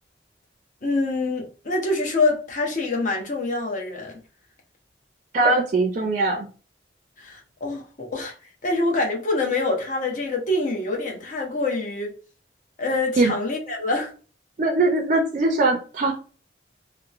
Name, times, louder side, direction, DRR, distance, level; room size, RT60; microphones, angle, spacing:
voice 1, 0.8-4.1 7.2-8.3 8.6-12.1 12.8-14.1, left 2 dB, 45° left, 0.7 m, -25 dB
voice 2, 5.3-6.5 13.2-13.3 14.6-16.1, right 2 dB, 45° right, 0.4 m, -21 dB
2.9 x 2.0 x 2.3 m
head